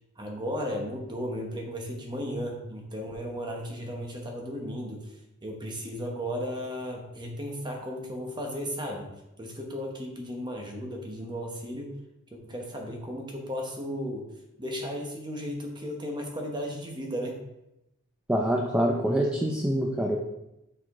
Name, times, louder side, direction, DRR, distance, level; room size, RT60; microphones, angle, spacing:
voice 1, 0.2-5.2 5.4-9.1 9.4-11.9 12.3-14.3 14.6-17.4, equal, 20° right, 1 dB, 1.0 m, -35 dB
voice 2, 18.3-20.2, equal, 5° right, 0 dB, 0.4 m, -25 dB
6.1 x 4.7 x 3.7 m, 0.89 s
head